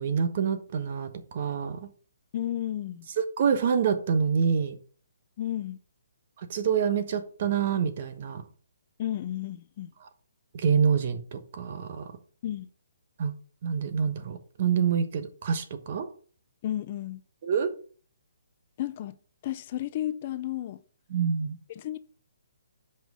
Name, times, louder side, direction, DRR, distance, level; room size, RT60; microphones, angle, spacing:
voice 1, 0.0-1.8 3.4-4.8 6.5-8.4 10.5-12.1 13.2-13.3 13.6-16.1 17.4-17.7 21.1-21.6, right 6 dB, 45° right, 1.1 m, -26 dB
voice 2, 2.3-3.1 5.4-5.8 9.0-9.9 12.4-12.7 16.6-17.2 18.8-19.2 19.4-20.8 21.8-22.0, left 12 dB, 35° left, 0.5 m, -32 dB
6.0 x 5.3 x 6.2 m
hypercardioid pair, 160°, 0 cm